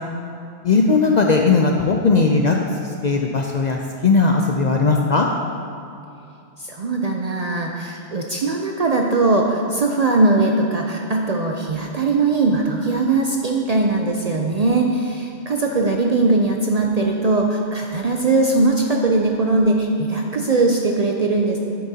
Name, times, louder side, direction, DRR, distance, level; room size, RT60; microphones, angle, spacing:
voice 1, 0.6-2.6 2.8-5.3, left 4 dB, 55° left, 1 dB, 0.5 m, -18 dB
voice 2, 6.6-21.6, right 3 dB, 50° right, 1 dB, 0.5 m, -20 dB
9.6 x 8.5 x 2.8 m, 2.7 s
omnidirectional pair, 1.2 m